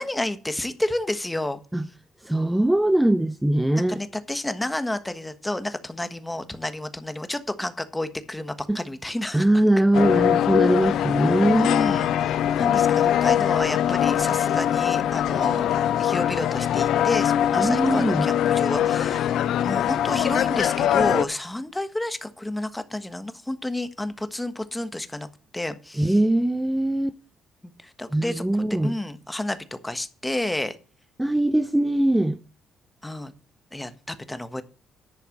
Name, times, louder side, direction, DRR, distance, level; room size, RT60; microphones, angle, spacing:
voice 1, 0.0-1.6 3.9-9.5 11.5-12.1 12.6-15.7 16.0-19.4 19.6-25.3 25.5-26.2 27.6-30.8 33.0-33.3 33.7-34.6, left 1 dB, 10° left, 1.3 m, -30 dB
voice 2, 2.2-4.0 8.7-8.8 9.3-11.7 17.6-18.3 26.0-27.1 28.1-28.9 31.2-32.4, right 1 dB, 10° right, 0.5 m, -21 dB
sound 1, 9.9-21.2, left 10 dB, 80° left, 0.5 m, -22 dB
11.0 x 4.5 x 7.3 m
cardioid pair, 90°, 0 cm